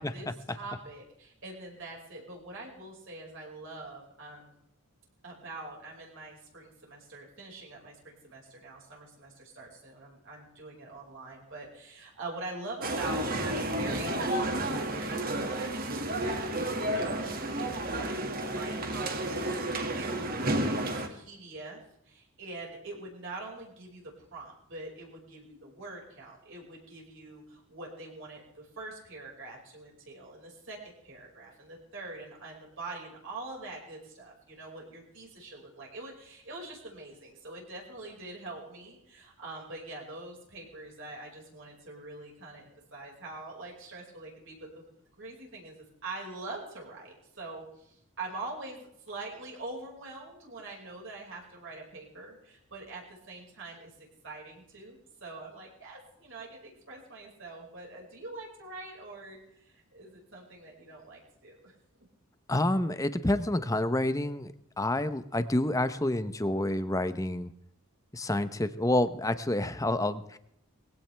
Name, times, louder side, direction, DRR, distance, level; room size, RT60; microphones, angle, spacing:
voice 1, 0.0-4.6 5.2-19.1 19.4-21.8 22.1-44.8 45.2-61.7, right 2 dB, 55° right, -2 dB, 5.2 m, -44 dB
sound 1, 12.8-21.1, right 1 dB, 40° right, 2.0 m, -31 dB
voice 2, 62.5-67.5 68.1-70.4, left 1 dB, 15° left, 12 dB, 0.8 m, -28 dB
21.0 x 16.5 x 3.4 m, 0.76 s
head